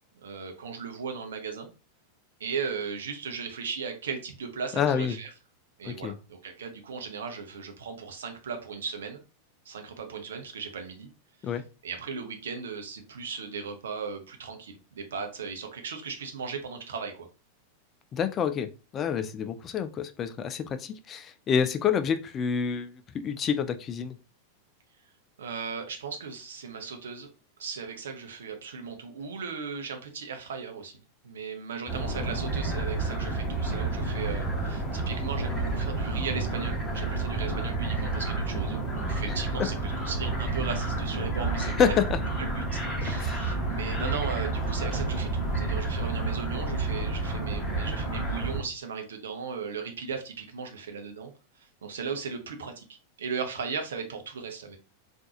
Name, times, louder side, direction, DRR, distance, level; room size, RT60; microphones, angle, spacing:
voice 1, 0.2-1.7 2.4-5.3 5.8-9.2 9.6-11.1 11.4-11.5 11.8-17.3 25.4-27.3 27.6-30.9 31.2-41.7 42.5-54.8, right 5 dB, 65° right, 4 dB, 0.7 m, -37 dB
voice 2, 4.7-5.2 5.8-6.2 11.4-11.6 18.1-24.2 39.6-39.7 41.6-42.2 43.0-43.4, left 7 dB, 25° left, 10 dB, 0.3 m, -28 dB
sound 1, 31.9-48.6, right 3 dB, 10° left, 1.3 m, -30 dB
3.7 x 2.5 x 2.8 m, 0.33 s
figure-of-eight pair, 90°, 0 cm